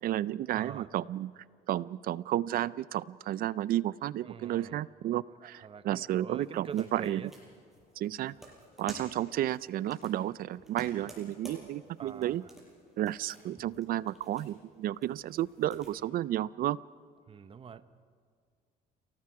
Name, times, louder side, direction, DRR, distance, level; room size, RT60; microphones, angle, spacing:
voice 1, 0.0-1.3 1.7-7.2 8.0-8.3 8.8-12.4 13.0-16.8, right 13 dB, 60° right, 19 dB, 0.4 m, -32 dB
voice 2, 0.5-0.9 4.2-4.8 5.4-7.3 12.0-12.5 17.3-17.8, right 6 dB, 35° right, 12 dB, 0.9 m, -45 dB
sound 1, 6.3-15.9, right 1 dB, ahead, 7.5 m, -53 dB
sound 2, 6.9-15.9, left 3 dB, 70° left, 3.0 m, -67 dB
30.0 x 18.0 x 4.8 m, 2.1 s
cardioid pair, 110°, 17 cm